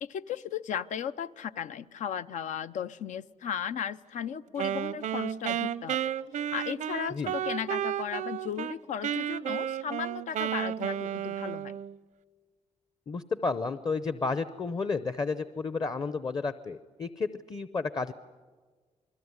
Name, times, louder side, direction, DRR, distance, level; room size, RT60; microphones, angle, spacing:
voice 1, 0.0-6.0 6.5-11.8, left 8 dB, 85° left, 12 dB, 0.7 m, -35 dB
Wind instrument woodwind instrument, 4.6-8.7 9.0-11.9, right 10 dB, 90° right, 0.7 m, -32 dB
voice 2, 13.1-18.1, left 4 dB, 30° left, 13 dB, 0.7 m, -32 dB
28.0 x 21.0 x 9.7 m, 1.4 s
wide cardioid pair, 170°, 12 cm